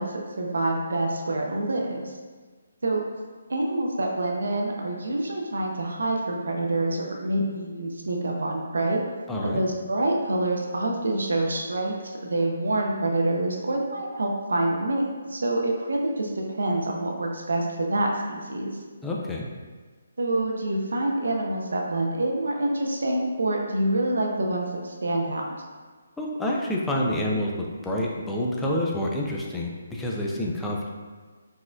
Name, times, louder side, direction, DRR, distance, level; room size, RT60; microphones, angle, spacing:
voice 1, 0.0-2.1 2.8-3.0 3.5-9.0 9.4-18.8 20.2-25.4, right 1 dB, 85° right, 0 dB, 0.5 m, -26 dB
voice 2, 9.3-9.6 19.0-19.5 26.2-30.9, left 1 dB, 5° left, -3 dB, 0.3 m, -28 dB
4.2 x 2.4 x 2.3 m, 1.4 s
hypercardioid pair, 160°, 0 cm